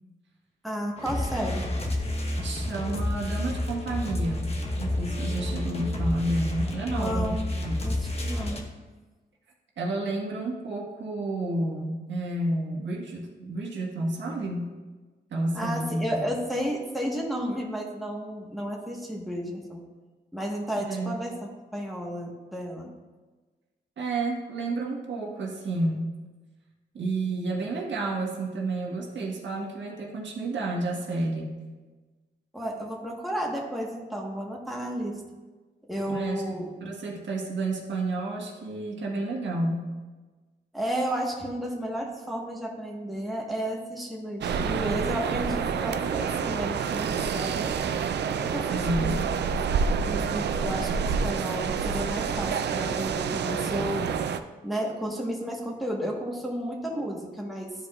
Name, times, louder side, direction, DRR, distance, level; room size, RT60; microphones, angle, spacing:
voice 1, 0.6-1.7 6.8-7.5 7.8-8.6 15.5-19.8 20.3-21.3 21.7-22.9 32.5-35.2 35.9-36.7 40.7-47.8 48.3-49.2 50.0-54.1 54.6-57.7, equal, ahead, -2 dB, 1.3 m, -32 dB
sound 1, 1.0-8.6, left 1 dB, 35° left, 1.0 m, -30 dB
voice 2, 2.4-7.3 7.6-8.1 9.8-14.7 15.3-16.3 20.9-21.1 24.0-26.1 26.9-31.6 36.1-39.9 48.7-49.3, right 2 dB, 85° right, -2 dB, 1.4 m, -30 dB
sound 2, 44.4-54.4, right 6 dB, 70° right, 0.4 m, -28 dB
12.5 x 4.9 x 2.4 m, 1.3 s
cardioid pair, 100°, 18 cm